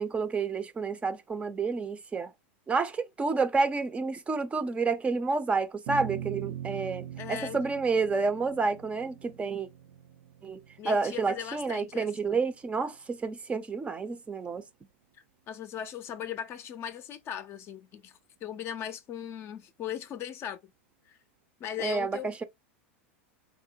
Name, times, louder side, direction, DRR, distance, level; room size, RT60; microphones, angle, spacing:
voice 1, 0.0-2.3 2.7-9.7 10.4-14.6 21.8-22.4, right 4 dB, 20° right, 0.5 m, -29 dB
sound 1, 5.9-12.4, right 10 dB, 60° right, 0.6 m, -42 dB
voice 2, 7.2-7.6 10.8-12.1 15.5-20.7 21.1-21.2 21.6-22.4, left 10 dB, 40° left, 0.5 m, -38 dB
3.6 x 2.1 x 2.6 m
hypercardioid pair, 105°, 7 cm